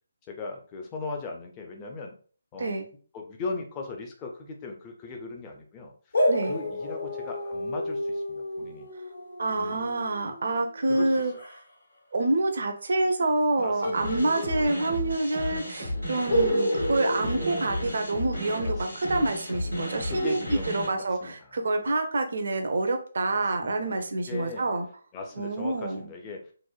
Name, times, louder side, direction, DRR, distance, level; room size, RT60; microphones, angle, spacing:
voice 1, 0.3-2.1 2.5-2.7 3.1-5.9 6.5-8.9 9.6-9.9 10.8-11.1 13.6-14.1 18.6-19.1 20.1-21.3 23.3-24.0 24.3-24.7 25.1-26.5, left 3 dB, 20° left, 2 dB, 0.4 m, -38 dB
sound 1, 6.1-11.6 13.8-15.3 15.5-15.6 16.3-18.5, equal, 60° left, 0.8 m, -30 dB
voice 2, 9.4-11.3 12.1-24.9 25.4-26.1, right 2 dB, 55° right, 6 dB, 0.5 m, -27 dB
sound 2, 13.9-20.9, left 1 dB, 80° left, 1.2 m, -33 dB
3.0 x 2.0 x 2.3 m, 0.42 s
figure-of-eight pair, 145°, 0 cm